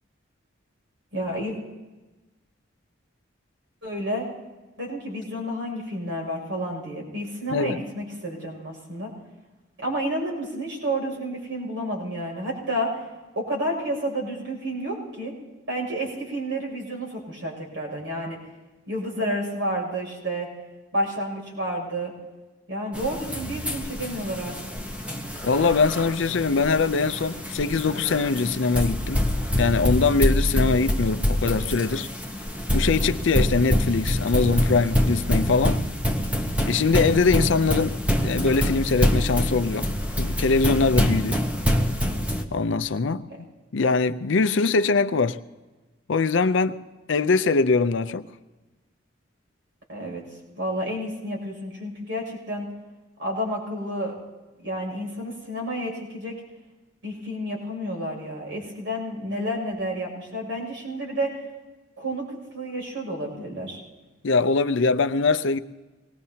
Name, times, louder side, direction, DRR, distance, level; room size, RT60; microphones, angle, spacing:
voice 1, 1.1-1.5 3.8-4.3 4.8-9.1 9.8-13.0 13.3-15.3 15.7-18.4 18.9-20.5 20.9-22.1 22.7-24.5 43.3-43.4 49.9-50.2 50.6-52.7 53.2-54.1 54.6-56.3 57.0-61.4 62.0-63.8, equal, 75° right, 6.4 m, -30 dB
sound 1, 22.9-42.4, equal, 5° right, 0.9 m, -25 dB
voice 2, 25.4-29.3 29.6-32.1 32.7-35.8 36.6-39.9 40.2-41.4 42.5-43.3 43.7-45.4 46.1-46.8 47.1-48.3 64.2-65.6, left 4 dB, 75° left, 0.5 m, -22 dB
25.5 x 20.0 x 2.8 m
head